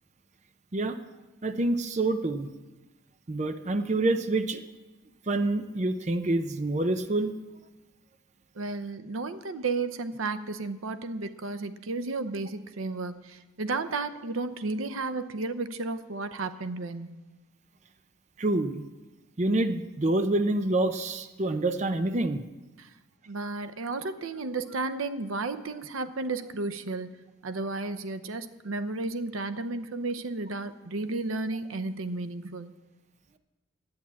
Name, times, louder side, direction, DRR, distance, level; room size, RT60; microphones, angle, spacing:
voice 1, 1.4-2.5 3.3-4.6 5.3-7.3 18.4-18.9 19.4-22.4, right 2 dB, 35° right, 9 dB, 0.5 m, -27 dB
voice 2, 8.5-17.2 22.8-22.9 23.3-27.1 27.4-32.7, right 3 dB, 85° right, 12 dB, 0.7 m, -33 dB
10.5 x 8.8 x 8.4 m, 1.1 s
head